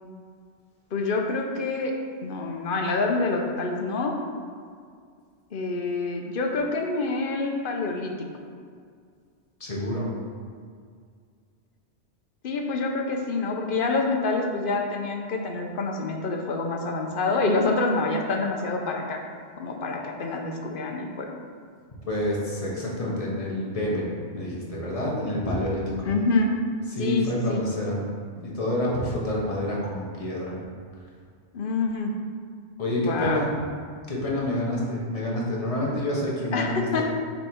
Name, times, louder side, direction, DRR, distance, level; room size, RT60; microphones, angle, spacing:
voice 1, 0.9-1.9 2.2-4.2 5.5-8.1 12.4-19.2 19.6-21.3 26.0-26.5 27.0-27.6 31.5-32.1 33.0-33.4 36.5-37.0, left 3 dB, 55° left, 2 dB, 0.8 m, -27 dB
voice 2, 9.6-10.1 22.1-26.1 26.9-28.0 28.4-30.6 32.8-33.5 34.1-37.0, left 1 dB, 30° left, -4 dB, 1.2 m, -28 dB
5.5 x 4.0 x 4.4 m, 2.1 s
omnidirectional pair, 1.2 m